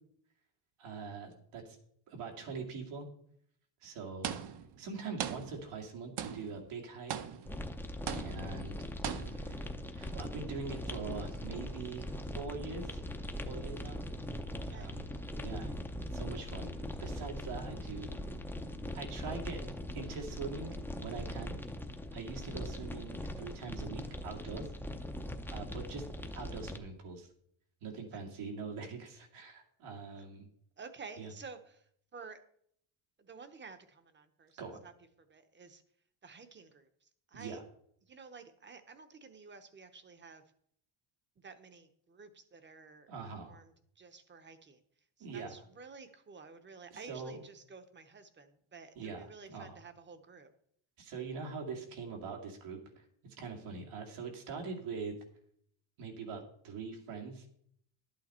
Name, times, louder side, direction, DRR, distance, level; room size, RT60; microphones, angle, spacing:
voice 1, 0.8-1.8 2.1-3.1 3.8-4.4 4.8-7.1 8.1-8.8 9.2-13.0 13.4-14.0 14.7-15.1 15.4-15.7 16.1-18.1 18.9-19.6 19.9-21.6 22.1-24.7 25.5-26.0 26.3-27.3 27.8-30.5 31.2-31.3 34.6-34.8 37.3-37.6 43.1-43.6 45.2-45.6 46.9-47.4 48.9-49.8 51.0-55.2 56.0-57.5, right 4 dB, 90° right, 2 dB, 2.6 m, -43 dB
sound 1, 4.2-4.8 5.2-5.9 6.2-6.7 7.1-7.7 8.1-8.6 9.0-9.6, right 9 dB, 55° right, 0.8 m, -40 dB
sound 2, 7.5-26.8, left 1 dB, 5° left, 0.5 m, -41 dB
voice 2, 30.8-32.4 33.2-34.5 34.8-34.9 35.3-35.8 36.2-37.6 38.1-40.4 41.4-43.1 43.4-44.8 45.2-50.5, right 4 dB, 25° right, 10 dB, 0.8 m, -52 dB
11.5 x 8.7 x 4.3 m, 0.68 s
cardioid pair, 160°, 49 cm